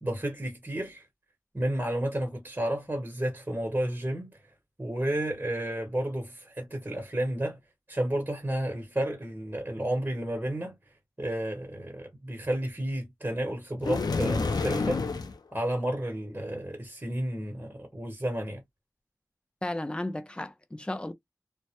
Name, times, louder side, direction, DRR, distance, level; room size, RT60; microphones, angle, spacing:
voice 1, 0.0-1.1 1.5-4.4 4.8-7.6 7.9-10.7 11.2-15.0 15.5-18.6, right 1 dB, 30° right, 1.0 m, -31 dB
sound 1, 13.8-15.4, left 4 dB, 90° left, 0.4 m, -28 dB
voice 2, 19.6-21.1, left 1 dB, 15° left, 0.5 m, -34 dB
2.1 x 2.0 x 2.9 m
wide cardioid pair, 55°, 7 cm